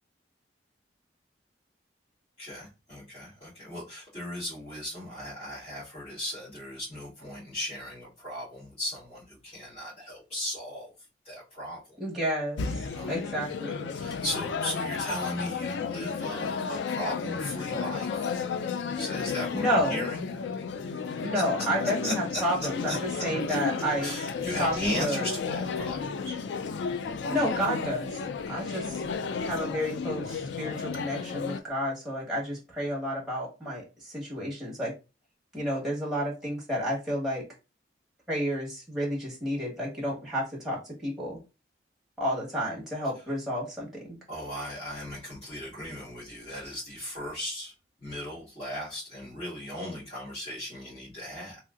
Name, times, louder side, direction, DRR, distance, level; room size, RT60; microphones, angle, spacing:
voice 1, 2.4-10.9 11.2-12.0 12.9-13.1 13.9-18.3 18.9-20.3 20.6-21.0 21.8-22.4 22.9-23.0 23.5-23.6 24.0-26.0 26.2-26.4 44.3-47.7 48.0-51.6, equal, 30° left, -12 dB, 1.7 m, -37 dB
voice 2, 12.0-13.9 19.5-20.0 21.2-24.1 24.6-25.3 27.3-28.2 28.5-29.0 29.4-34.9 35.5-37.4 38.3-41.4 42.2-44.1, equal, ahead, -4 dB, 1.1 m, -31 dB
sound 1, 12.6-31.6, left 5 dB, 80° left, 0.3 m, -33 dB
3.2 x 2.7 x 2.4 m, 0.29 s
head